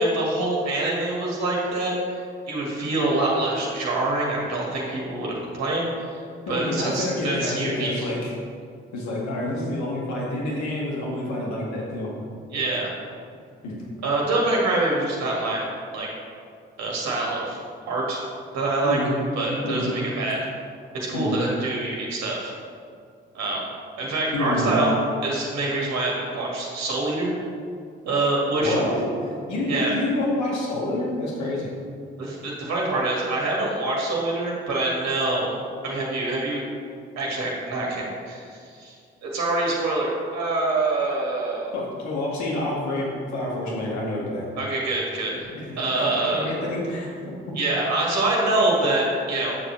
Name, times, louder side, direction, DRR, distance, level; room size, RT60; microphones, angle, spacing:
voice 1, 0.0-2.2 2.5-6.2 6.5-8.1 12.5-12.9 14.0-15.7 15.9-16.1 16.8-17.6 17.9-18.2 18.5-19.0 19.4-20.4 20.9-22.5 23.3-23.6 24.0-24.9 25.2-27.3 28.0-28.8 29.7-30.0 32.2-35.6 35.8-36.6 37.2-38.9 39.2-41.7 44.6-45.4 45.8-46.5 47.5-49.6, right 2 dB, 60° right, -3 dB, 1.9 m, -25 dB
voice 2, 6.5-8.3 8.9-12.1 13.6-13.8 18.8-19.2 19.6-20.0 21.1-21.4 24.3-24.7 28.6-31.7 41.7-44.5 45.5-47.4, left 1 dB, 65° left, -3 dB, 1.8 m, -28 dB
8.4 x 6.9 x 3.2 m, 2.2 s
figure-of-eight pair, 40°, 30 cm